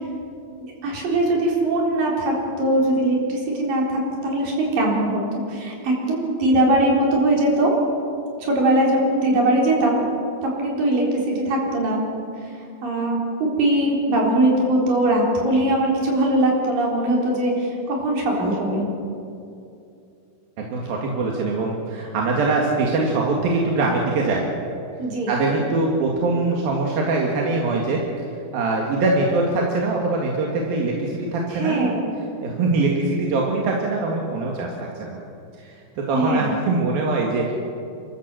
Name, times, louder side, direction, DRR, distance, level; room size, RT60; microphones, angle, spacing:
voice 1, 0.6-7.7 8.4-10.0 10.4-12.0 12.8-18.9 25.0-25.3 31.5-32.1 36.1-36.5, right 1 dB, 70° right, -2 dB, 5.6 m, -21 dB
voice 2, 20.6-24.5 25.3-28.0 28.5-31.9 32.4-35.2 35.6-37.5, right 3 dB, 90° right, -1 dB, 3.8 m, -23 dB
29.5 x 13.5 x 7.8 m, 2.6 s
omnidirectional pair, 4.1 m